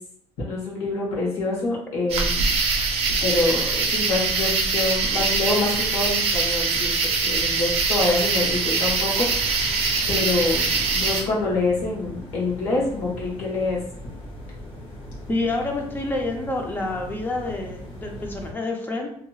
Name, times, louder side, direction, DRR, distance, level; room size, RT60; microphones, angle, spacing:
voice 1, 0.4-2.5 3.2-6.9 7.2-9.7 10.1-13.8, left 3 dB, 85° left, -3 dB, 1.2 m, -26 dB
sound 1, 2.1-11.2, right 4 dB, 65° right, 0.5 m, -23 dB
sound 2, 9.2-18.5, left 1 dB, 50° left, 0.8 m, -39 dB
voice 2, 15.3-19.1, left 2 dB, 20° left, 2 dB, 0.5 m, -28 dB
2.8 x 2.8 x 2.3 m, 0.68 s
cardioid pair, 140°, 11 cm